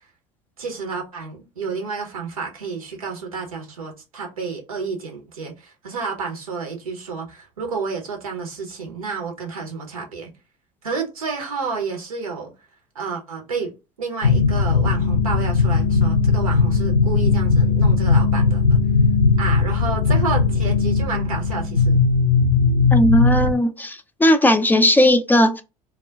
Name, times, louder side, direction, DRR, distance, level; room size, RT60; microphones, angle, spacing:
voice 1, 0.6-10.3 10.8-12.5 12.9-13.7 14.0-18.8 19.4-22.0, right 5 dB, 85° right, 0.7 m, -30 dB
sound 1, 14.2-23.5, left 4 dB, 85° left, 0.4 m, -18 dB
voice 2, 22.9-25.6, left 1 dB, 10° left, 0.3 m, -17 dB
2.3 x 2.1 x 3.3 m
hypercardioid pair, 70°, 18 cm